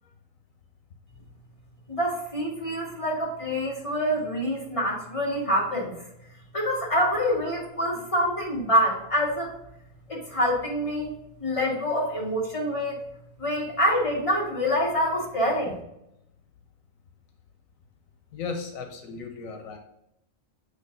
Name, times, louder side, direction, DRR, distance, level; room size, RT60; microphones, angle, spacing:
voice 1, 1.9-5.9 6.5-9.5 10.1-13.0 13.4-15.8, equal, 25° left, -5 dB, 2.2 m, -26 dB
voice 2, 18.3-19.8, left 4 dB, 85° left, 4 dB, 1.2 m, -35 dB
8.2 x 3.3 x 3.9 m, 0.82 s
omnidirectional pair, 1.4 m